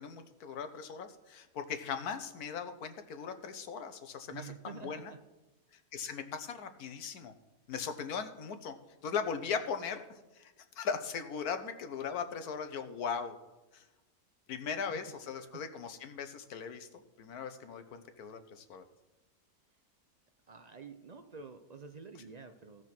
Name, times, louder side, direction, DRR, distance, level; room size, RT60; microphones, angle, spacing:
voice 1, 0.0-5.1 5.9-7.3 7.7-8.7 9.0-10.0 10.3-13.4 13.7-13.8 14.5-16.9 17.2-18.8, left 6 dB, 80° left, 8 dB, 1.5 m, -39 dB
voice 2, 4.3-5.2 14.9-15.0 15.4-15.5 20.5-22.8, right 5 dB, 55° right, 7 dB, 0.4 m, -48 dB
16.0 x 6.2 x 6.0 m, 1.1 s
omnidirectional pair, 1.6 m